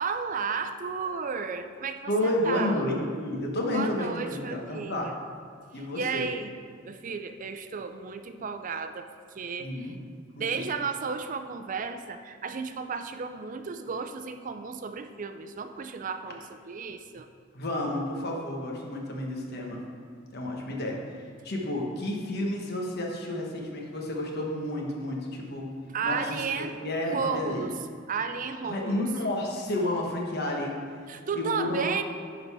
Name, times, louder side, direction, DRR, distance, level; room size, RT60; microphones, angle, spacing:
voice 1, 0.0-2.8 3.7-5.1 5.9-6.5 6.8-9.1 9.4-9.9 10.4-17.3 25.9-26.7 27.1-27.7 28.1-29.0 31.1-32.0, right 5 dB, 40° right, 8 dB, 0.4 m, -33 dB
voice 2, 2.1-5.1 5.7-6.3 9.6-9.9 10.3-10.7 17.5-19.8 20.3-25.7 26.0-26.5 26.8-27.7 28.6-30.7 31.3-32.0, left 1 dB, 55° left, 0 dB, 1.1 m, -31 dB
11.0 x 4.0 x 4.7 m, 2.2 s
head